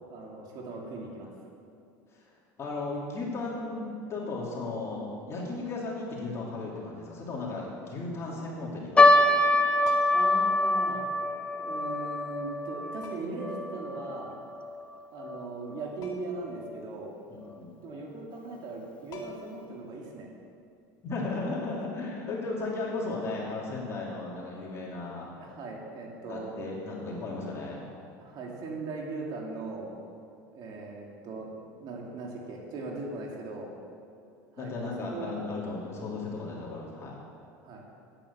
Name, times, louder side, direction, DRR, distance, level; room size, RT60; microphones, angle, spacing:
voice 1, 0.1-1.3 8.3-8.4 10.1-11.0 11.6-14.4 15.1-17.2 17.8-20.3 25.4-26.5 28.2-29.9 30.5-33.7 34.5-35.3 37.6-37.9, right 3 dB, 55° right, -1 dB, 2.5 m, -39 dB
voice 2, 2.6-9.1 17.3-17.8 21.0-25.3 26.3-27.8 34.6-37.2, left 3 dB, 35° left, -4 dB, 2.8 m, -35 dB
sound 1, 9.0-15.5 15.7-15.8 16.6-16.9 17.5-17.6 17.9-18.1, left 2 dB, 15° left, 0.9 m, -25 dB
sound 2, 9.8-10.4 11.7-11.8 13.0-13.5 16.0-16.4 16.8-16.9 18.7-18.8 19.1-19.7 21.7-21.9, left 3 dB, 50° left, 2.0 m, -44 dB
9.1 x 9.0 x 7.0 m, 2.5 s
supercardioid pair, 115°, 9 cm